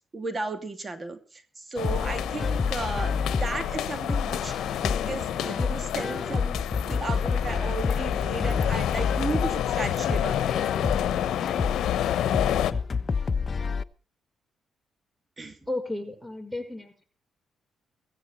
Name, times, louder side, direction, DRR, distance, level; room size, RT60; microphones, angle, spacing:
voice 1, 0.1-4.5 5.0-10.7 15.4-15.6, right 3 dB, 35° right, 9 dB, 2.5 m, -34 dB
sound 1, 1.8-12.7, left 11 dB, 80° left, 1.0 m, -29 dB
sound 2, 1.8-13.8, left 5 dB, 40° left, 0.9 m, -29 dB
voice 2, 15.6-17.0, left 2 dB, 5° right, 9 dB, 5.7 m, -33 dB
16.0 x 15.5 x 4.4 m, 0.40 s
supercardioid pair, 65°, 0 cm